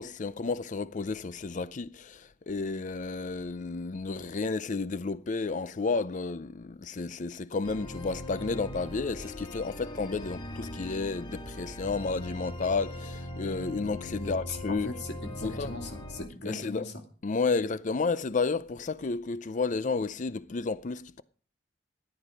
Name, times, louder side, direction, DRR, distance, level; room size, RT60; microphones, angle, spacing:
voice 1, 0.0-14.9 15.4-15.7 16.5-16.9 17.2-21.2, left 4 dB, 45° left, 0.5 m, -32 dB
sound 1, 7.6-16.3, left 1 dB, 25° left, 1.9 m, -40 dB
voice 2, 14.2-16.9, left 2 dB, 65° left, 2.6 m, -39 dB
14.0 x 9.9 x 5.1 m
head